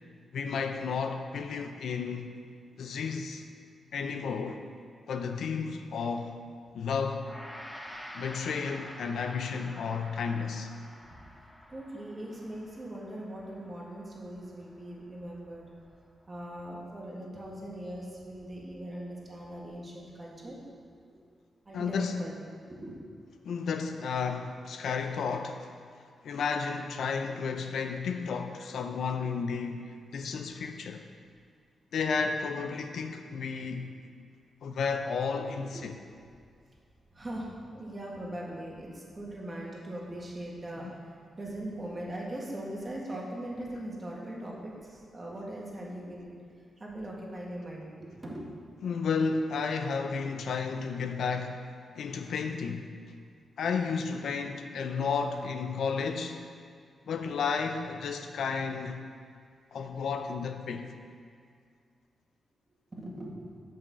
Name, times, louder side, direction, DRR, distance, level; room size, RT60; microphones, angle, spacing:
voice 1, 0.3-2.3 2.8-3.4 3.9-4.6 5.1-6.4 6.7-7.3 8.1-10.7 21.7-22.2 23.4-25.7 26.2-31.0 31.9-33.9 34.6-35.9 48.8-51.7 51.9-52.9 53.6-56.4 57.1-59.0 59.7-60.9, left 5 dB, 80° left, 0.6 m, -32 dB
Gong, 7.2-16.6, equal, 10° left, 0.9 m, -49 dB
voice 2, 10.8-11.3 11.7-15.7 16.3-20.6 21.7-22.9 33.1-33.2 35.7-35.8 37.1-40.9 41.4-46.4 46.8-48.4 54.9-55.1 62.9-63.5, right 1 dB, 25° right, 1.9 m, -40 dB
7.1 x 5.6 x 6.9 m
cardioid pair, 100°, 0 cm